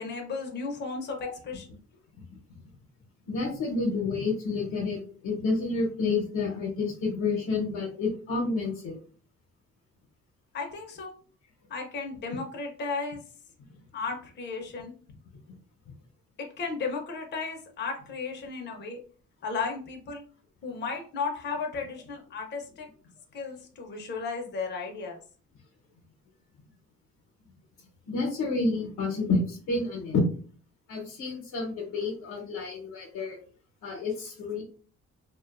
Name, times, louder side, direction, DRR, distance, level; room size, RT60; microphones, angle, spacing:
voice 1, 0.0-1.6 10.5-11.1 11.7-13.2 13.9-14.9 16.4-19.0 19.4-20.3 20.6-22.9 23.3-25.2, left 4 dB, 35° left, 2 dB, 0.6 m, -34 dB
voice 2, 3.3-8.9 28.1-30.2 30.9-33.4 33.8-34.6, left 3 dB, 80° left, 0 dB, 0.8 m, -29 dB
2.5 x 2.2 x 2.4 m, 0.42 s
cardioid pair, 90°, 30 cm